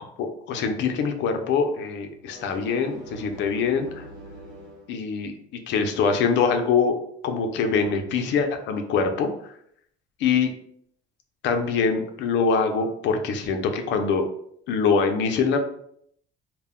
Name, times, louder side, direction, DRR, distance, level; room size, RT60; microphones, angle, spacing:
voice 1, 0.2-4.0 4.9-9.5 10.2-10.5 11.4-14.3 14.7-15.6, left 5 dB, 65° left, 6 dB, 0.5 m, -24 dB
sound 1, 2.1-4.9, right 1 dB, 40° right, 1.1 m, -43 dB
2.1 x 2.1 x 3.5 m, 0.69 s
cardioid pair, 140°, 20 cm